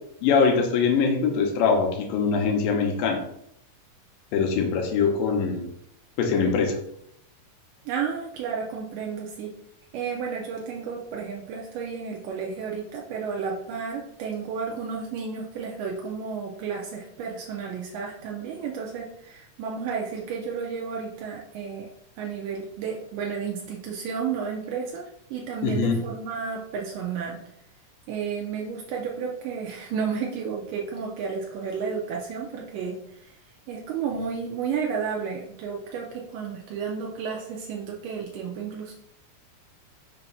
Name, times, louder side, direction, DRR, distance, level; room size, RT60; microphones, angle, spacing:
voice 1, 0.2-3.2 4.3-5.7 6.2-6.8 25.6-26.0, left 5 dB, 85° left, 3 dB, 2.6 m, -23 dB
voice 2, 7.9-9.5 9.9-21.9 22.2-25.0 25.3-27.4 28.1-33.3 33.7-38.9, right 6 dB, 80° right, -1 dB, 2.3 m, -32 dB
6.1 x 2.8 x 5.4 m, 0.74 s
omnidirectional pair, 3.8 m